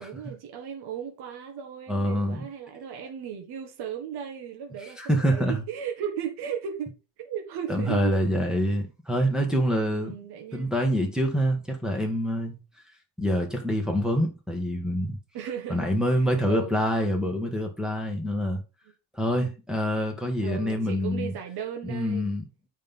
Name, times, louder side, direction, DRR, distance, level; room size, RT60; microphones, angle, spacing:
voice 1, 0.0-8.2 9.8-10.7 15.3-15.9 16.3-16.8 18.1-18.2 20.4-22.3, right 8 dB, 55° right, 1.7 m, -36 dB
voice 2, 1.9-2.5 5.0-5.6 7.7-10.1 10.5-12.6 13.2-15.2 15.7-18.6 19.1-21.3 21.8-22.4, equal, ahead, 1.7 m, -26 dB
8.3 x 5.5 x 4.0 m
cardioid pair, 165°, 45 cm